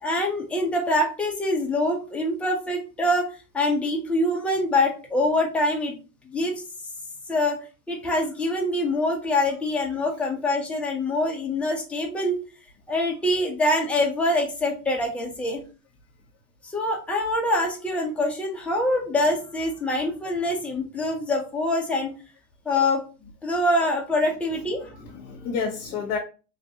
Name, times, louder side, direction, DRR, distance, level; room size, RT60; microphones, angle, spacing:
voice 1, 0.0-6.0 6.2-6.6 7.3-7.6 7.9-12.4 12.9-15.6 16.6-22.1 22.7-25.0, left 1 dB, 5° left, 0 dB, 0.3 m, -25 dB
voice 2, 24.2-26.2, left 5 dB, 45° left, -1 dB, 1.0 m, -32 dB
3.1 x 2.5 x 2.7 m, 0.33 s
hypercardioid pair, 105°, 44 cm